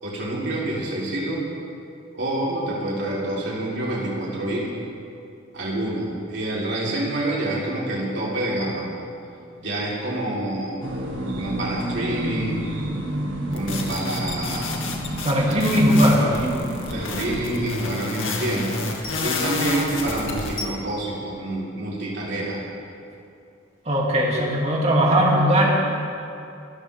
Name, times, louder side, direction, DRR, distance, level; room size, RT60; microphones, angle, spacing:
voice 1, 0.0-1.4 2.1-4.7 5.5-8.9 9.6-10.8 11.3-12.6 13.5-14.8 16.9-18.8 19.2-22.6, right 1 dB, 65° right, -5 dB, 3.7 m, -27 dB
sound 1, 10.8-17.7, right 1 dB, 80° right, 1.8 m, -30 dB
sound 2, 13.5-20.6, left 3 dB, 85° left, 2.1 m, -30 dB
voice 2, 15.2-16.6 23.9-25.7, equal, 35° right, -3 dB, 2.6 m, -19 dB
24.0 x 13.5 x 3.6 m, 2.6 s
head